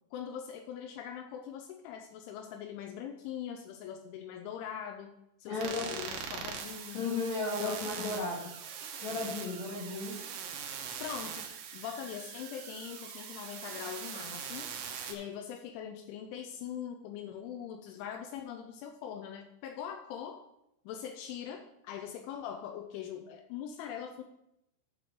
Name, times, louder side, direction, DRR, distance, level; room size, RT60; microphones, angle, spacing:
voice 1, 0.1-7.1 7.6-8.3 11.0-11.5 11.7-14.7 15.1-20.4 20.9-24.2, left 9 dB, 85° left, 5 dB, 2.9 m, -42 dB
voice 2, 5.5-5.9 6.9-8.5 9.0-10.2, left 3 dB, 65° left, -5 dB, 1.8 m, -34 dB
sound 1, 5.6-15.1, right 7 dB, 80° right, 2.4 m, -42 dB
11.5 x 6.5 x 3.7 m, 0.82 s
omnidirectional pair, 5.8 m